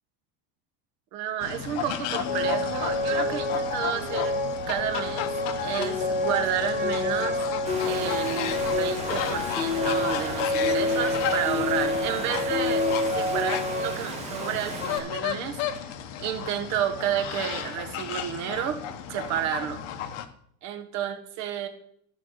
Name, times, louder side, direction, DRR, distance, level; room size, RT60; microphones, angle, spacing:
voice 1, 1.1-4.4 4.7-5.3 5.6-7.5 7.9-12.9 13.1-15.6 16.2-18.8 19.1-19.8 20.6-21.7, right 9 dB, 35° right, 8 dB, 1.2 m, -31 dB
sound 1, 1.4-20.2, left 9 dB, 50° left, 1.0 m, -34 dB
sound 2, 2.2-13.9, left 2 dB, 20° left, 1.2 m, -28 dB
Water, 7.7-15.0, right 4 dB, 15° right, 1.1 m, -37 dB
12.5 x 5.7 x 6.3 m, 0.67 s
supercardioid pair, 175°, 50 cm